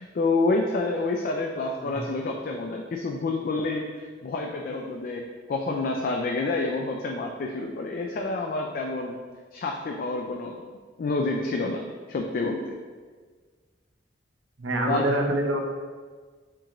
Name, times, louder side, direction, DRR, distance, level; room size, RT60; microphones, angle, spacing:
voice 1, 0.0-9.2 9.5-10.6 11.0-12.7 14.9-15.1, left 3 dB, 50° left, 1 dB, 0.3 m, -28 dB
voice 2, 14.6-15.8, right 1 dB, 85° right, 2 dB, 0.7 m, -26 dB
6.9 x 2.5 x 3.0 m, 1.5 s
head